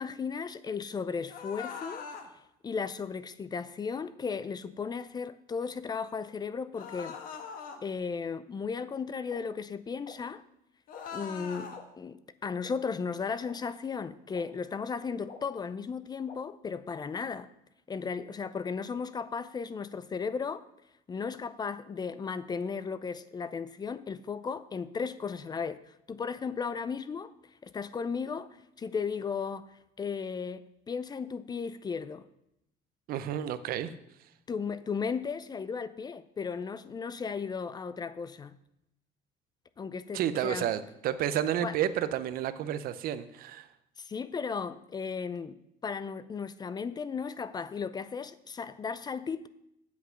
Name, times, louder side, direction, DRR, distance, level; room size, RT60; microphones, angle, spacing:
voice 1, 0.0-2.0 2.6-7.2 7.8-10.4 11.1-17.5 17.9-20.6 21.1-27.3 27.6-28.5 28.8-29.7 30.0-32.2 34.5-38.6 39.8-40.7 41.6-41.7 44.0-45.6 45.8-49.5, left 5 dB, 25° left, 15 dB, 0.4 m, -35 dB
sound 1, 1.3-2.3 6.7-7.8 10.9-11.8, left 6 dB, 60° left, 1.4 m, -41 dB
sound 2, 9.3-9.4 10.0-10.1 10.9-11.0 11.7-11.8 12.6-12.7 13.4-13.5 14.3-14.4 15.3-15.4 16.3-16.4, left 5 dB, 40° left, 1.4 m, -46 dB
voice 2, 33.1-33.9 40.1-43.7, right 10 dB, 65° right, 13 dB, 0.7 m, -31 dB
8.3 x 7.6 x 5.8 m, 0.81 s
cardioid pair, 115°, 17 cm